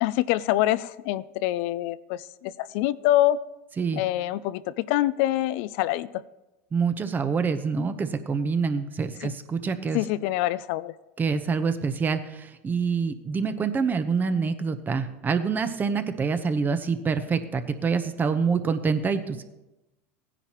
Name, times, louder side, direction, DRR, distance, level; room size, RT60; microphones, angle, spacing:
voice 1, 0.0-3.4 3.9-6.2 9.9-10.9, left 14 dB, 65° left, 17 dB, 0.4 m, -25 dB
voice 2, 6.7-10.0 11.2-19.4, right 5 dB, 25° right, 10 dB, 0.9 m, -26 dB
16.0 x 10.0 x 3.0 m, 0.98 s
hypercardioid pair, 100°, 7 cm